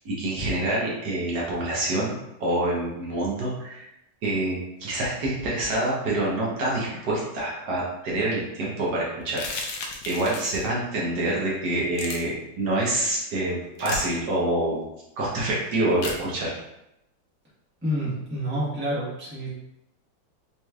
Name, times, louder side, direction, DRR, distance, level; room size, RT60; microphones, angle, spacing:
voice 1, 0.0-2.1 2.4-3.8 4.2-9.4 10.1-14.8 15.2-16.6, right 1 dB, 60° right, -4 dB, 1.3 m, -26 dB
sound 1, 9.3-10.7 11.9-12.2 13.8-14.0 16.0-16.2, left 3 dB, 75° left, 1.2 m, -34 dB
voice 2, 17.8-19.5, equal, 5° right, -9 dB, 1.1 m, -28 dB
4.1 x 3.1 x 2.3 m, 0.87 s
omnidirectional pair, 2.1 m